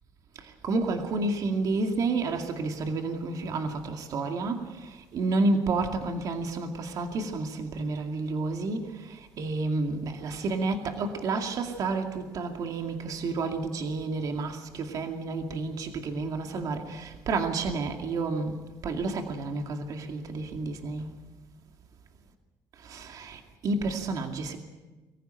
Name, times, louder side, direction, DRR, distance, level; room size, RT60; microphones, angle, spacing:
voice 1, 0.4-21.1 22.8-24.6, right 3 dB, 50° right, 2.3 m, -30 dB
24.5 x 15.0 x 9.0 m
cardioid pair, 125°, 8 cm